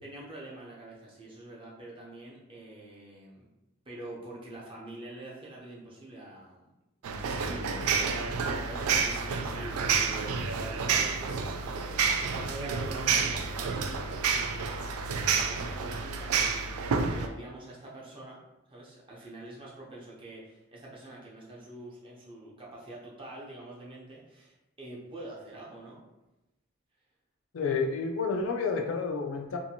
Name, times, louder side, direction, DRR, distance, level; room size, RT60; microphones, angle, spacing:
voice 1, 0.0-3.5 3.9-6.6 7.0-7.9 8.3-18.4 18.7-26.0, right 1 dB, 25° right, -5 dB, 0.6 m, -46 dB
sound 1, 7.0-17.3, right 5 dB, 85° right, 0.3 m, -29 dB
voice 2, 27.5-29.6, left 4 dB, 65° left, 3 dB, 0.4 m, -30 dB
2.7 x 2.5 x 2.7 m, 0.95 s
head